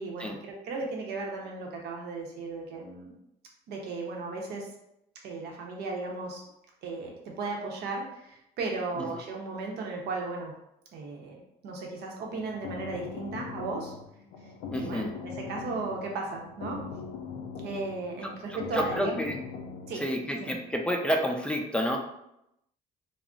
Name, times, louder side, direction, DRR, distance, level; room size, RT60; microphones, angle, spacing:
voice 1, 0.0-3.2 3.7-4.7 5.2-6.4 6.8-10.5 10.9-13.9 14.7-16.8 17.6-19.2 19.9-20.6, right 3 dB, 75° right, 0 dB, 0.7 m, -36 dB
sound 1, 12.2-20.0, left 5 dB, 85° left, 0.4 m, -41 dB
voice 2, 14.7-15.1 18.7-19.4 20.0-22.0, equal, 5° left, 2 dB, 0.4 m, -29 dB
2.4 x 2.0 x 3.7 m, 0.81 s
cardioid pair, 110°, 17 cm